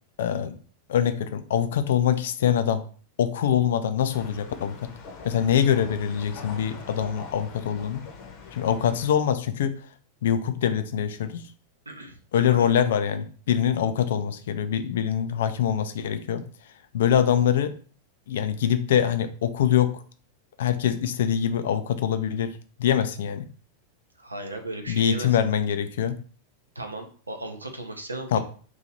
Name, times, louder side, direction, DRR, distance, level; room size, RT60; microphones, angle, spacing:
voice 1, 0.2-0.5 0.9-2.8 3.2-4.9 5.2-8.0 8.5-9.7 10.2-11.4 12.3-16.4 16.9-17.7 18.3-20.0 20.6-23.5 24.9-26.2 28.3-28.4, left 9 dB, 60° left, 10 dB, 0.4 m, -24 dB
sound 1, 4.1-9.1, left 5 dB, 45° left, 0.8 m, -43 dB
voice 2, 11.9-12.7 24.2-25.5 26.8-28.4, right 2 dB, 80° right, 5 dB, 0.6 m, -36 dB
3.1 x 2.8 x 3.8 m, 0.41 s
figure-of-eight pair, 90°, 0 cm